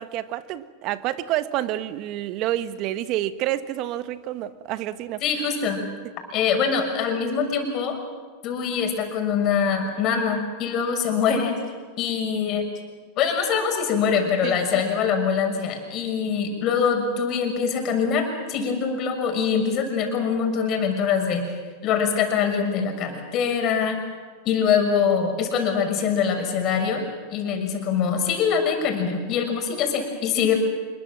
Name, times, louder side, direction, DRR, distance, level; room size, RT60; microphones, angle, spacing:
voice 1, 0.0-5.2 14.4-14.6, right 13 dB, 50° right, 13 dB, 1.4 m, -28 dB
voice 2, 5.2-5.8 6.3-8.0 8.4-11.5 12.0-12.7 13.2-21.6 21.8-24.0 24.4-27.0 27.3-30.6, left 6 dB, 45° left, 4 dB, 6.4 m, -23 dB
26.0 x 22.5 x 7.6 m, 1.5 s
hypercardioid pair, 100°, 0 cm